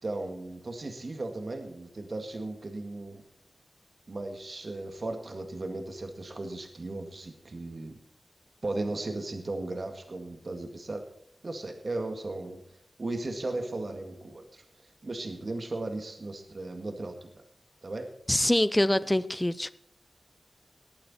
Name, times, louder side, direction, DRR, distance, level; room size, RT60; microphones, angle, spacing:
voice 1, 0.0-3.2 4.1-8.0 8.6-11.0 11.4-12.6 13.0-14.6 15.0-17.3 17.8-18.0, right 2 dB, 50° right, 5 dB, 1.9 m, -36 dB
voice 2, 18.3-19.7, left 1 dB, 15° left, 16 dB, 0.6 m, -24 dB
19.5 x 9.0 x 4.2 m, 0.68 s
wide cardioid pair, 75°, 0 cm